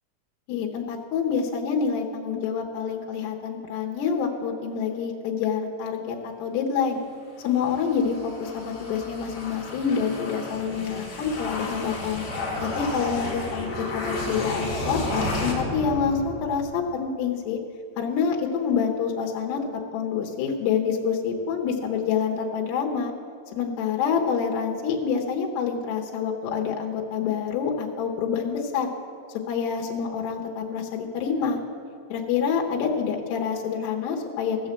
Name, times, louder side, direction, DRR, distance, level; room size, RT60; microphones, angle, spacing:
voice 1, 0.5-7.0 7.4-12.2 12.6-17.6 18.0-23.1 23.5-28.9 29.5-31.6 32.1-34.6, left 6 dB, 75° left, 0 dB, 3.0 m, -27 dB
sound 1, 7.4-16.8, left 2 dB, 45° left, 2.2 m, -32 dB
15.5 x 6.4 x 7.5 m, 2.3 s
omnidirectional pair, 5.1 m